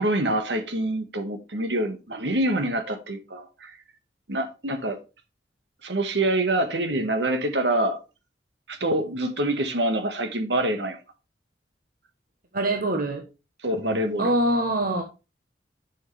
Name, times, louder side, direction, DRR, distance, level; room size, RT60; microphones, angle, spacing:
voice 1, 0.0-3.8 4.3-5.0 5.8-8.0 8.7-11.0 13.6-14.3, right 1 dB, 75° right, 1.7 m, -26 dB
voice 2, 12.5-13.2 14.2-15.0, right 1 dB, 55° right, 1.2 m, -23 dB
10.5 x 6.5 x 3.4 m
head